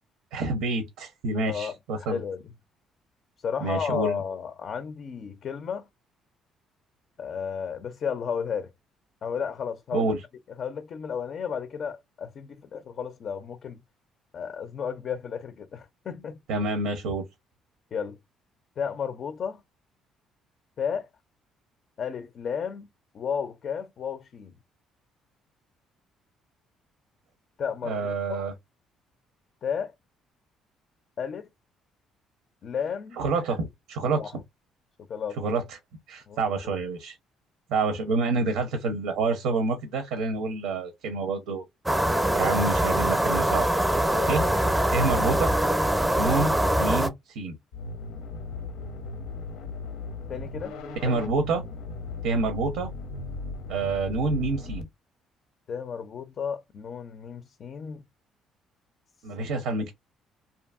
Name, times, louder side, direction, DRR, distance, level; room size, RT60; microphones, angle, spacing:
voice 1, 0.3-2.2 3.6-4.2 9.9-10.2 16.5-17.3 27.8-28.5 33.2-34.4 35.4-35.8 36.1-37.2 37.7-41.6 42.3-43.7 44.3-44.5 44.9-45.5 46.2-47.5 51.0-51.6 52.2-52.9 53.7-54.9 59.2-59.9, right 3 dB, 90° right, 0.5 m, -27 dB
voice 2, 1.4-2.4 3.4-5.8 7.2-8.7 9.2-10.1 10.6-13.8 14.3-16.4 17.9-18.2 18.8-19.6 20.8-21.1 22.0-22.9 23.1-24.5 27.6-28.4 29.6-29.9 31.2-31.5 32.6-33.2 34.2-34.3 35.1-35.4 36.3-36.7 44.1-44.5 50.3-50.7 51.0-51.2 55.7-58.0, left 7 dB, 50° left, 0.4 m, -33 dB
sound 1, 41.9-47.1, right 1 dB, 10° right, 0.5 m, -23 dB
sound 2, 47.7-54.8, left 3 dB, 90° left, 0.6 m, -37 dB
2.6 x 2.5 x 2.3 m
cardioid pair, 100°, 0 cm